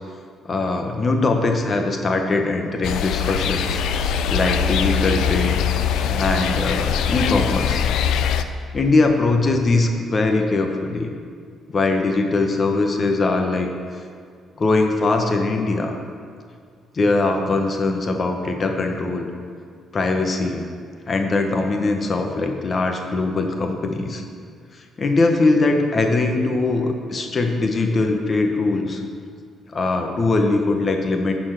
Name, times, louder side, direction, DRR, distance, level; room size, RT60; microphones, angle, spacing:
voice 1, 0.4-3.8 4.3-5.6 6.1-7.8 8.7-11.1 11.7-13.7 14.6-16.0 16.9-19.3 19.9-20.6 21.1-24.2 25.0-29.0 29.7-31.3, left 3 dB, 40° left, 4 dB, 1.1 m, -21 dB
sound 1, 2.8-8.4, left 7 dB, 80° left, 0.4 m, -22 dB
11.0 x 4.4 x 5.9 m, 2.1 s
cardioid pair, 85°, 0 cm